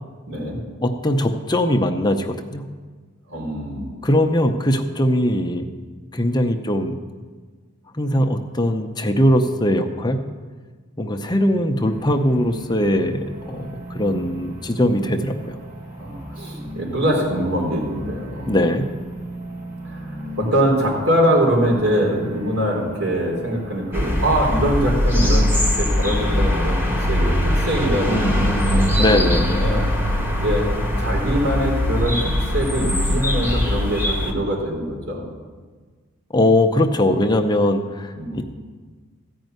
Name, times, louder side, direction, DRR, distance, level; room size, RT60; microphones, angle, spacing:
voice 1, 0.3-0.6 3.3-4.0 16.0-18.5 19.8-29.2 29.6-29.8 30.4-30.6 31.0-35.3 38.2-38.4, equal, 80° right, -1 dB, 3.8 m, -23 dB
voice 2, 0.8-2.6 4.0-5.7 6.1-7.0 7.9-10.2 11.0-15.6 18.5-18.9 28.1-29.7 36.3-38.4, left 1 dB, 20° left, 5 dB, 0.6 m, -20 dB
sound 1, 11.9-25.5, right 1 dB, 40° right, 2.1 m, -36 dB
sound 2, 23.9-34.3, left 1 dB, 10° right, 1.2 m, -21 dB
14.5 x 5.3 x 9.2 m, 1.4 s
head